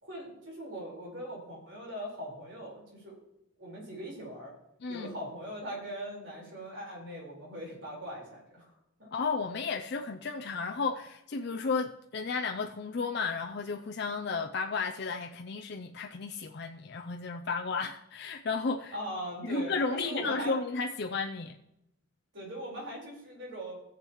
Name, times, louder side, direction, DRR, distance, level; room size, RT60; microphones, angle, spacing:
voice 1, 0.0-3.2 3.6-4.5 4.9-8.7 9.0-9.1 18.9-20.6 22.3-23.8, equal, 65° right, 4.4 m, -40 dB
voice 2, 4.8-5.2 9.1-18.9 19.4-21.6, left 4 dB, 55° left, 0.5 m, -33 dB
16.5 x 7.3 x 3.1 m
head